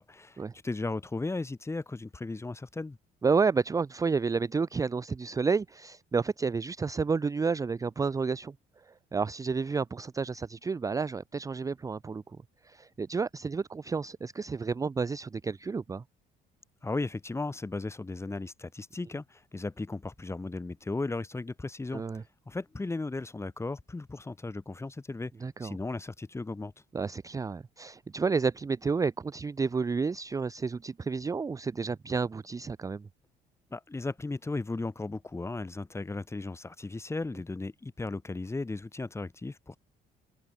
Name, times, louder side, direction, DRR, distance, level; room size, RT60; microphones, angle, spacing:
voice 1, 0.0-3.0 16.8-22.0 22.5-25.3 25.6-26.7 33.7-39.8, left 3 dB, 15° left, 4.2 m, -36 dB
voice 2, 3.2-12.2 12.6-16.0 21.9-22.2 25.4-25.8 26.9-33.1, right 5 dB, 20° right, 0.6 m, -30 dB
cardioid pair, 110°, 17 cm